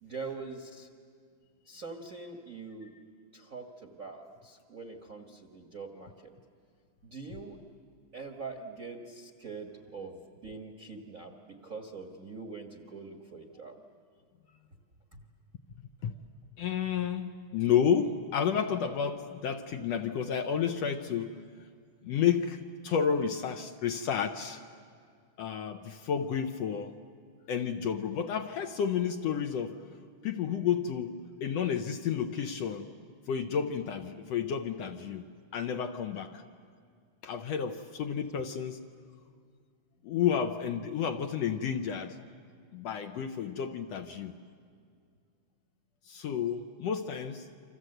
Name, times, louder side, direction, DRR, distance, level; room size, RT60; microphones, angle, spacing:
voice 1, 0.0-0.9 1.7-2.9 3.3-6.4 7.0-7.6 8.1-13.7 15.1-15.2, right 4 dB, 40° right, 4 dB, 1.2 m, -43 dB
voice 2, 16.6-21.4 22.0-24.6 25.4-27.0 27.5-29.8 30.2-32.9 33.3-35.3 35.5-36.4 37.2-38.8 40.0-42.2 42.7-44.4 46.1-47.5, left 7 dB, 70° left, 6 dB, 1.7 m, -31 dB
29.5 x 26.0 x 7.9 m, 2.2 s
omnidirectional pair, 3.5 m